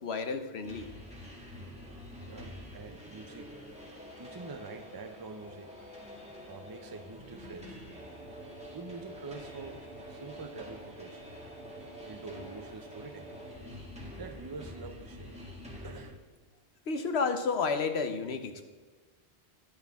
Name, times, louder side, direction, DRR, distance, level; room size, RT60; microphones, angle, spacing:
voice 1, 0.0-0.9 16.9-18.7, left 4 dB, 70° left, 8 dB, 1.2 m, -31 dB
sound 1, 0.6-16.1, equal, 5° right, 1.9 m, -46 dB
voice 2, 2.3-3.5 4.2-5.7 6.5-7.8 8.7-11.2 12.1-13.4 14.2-15.4 15.8-16.1, right 4 dB, 25° right, 8 dB, 0.5 m, -45 dB
11.5 x 10.5 x 3.6 m, 1.4 s
omnidirectional pair, 1.1 m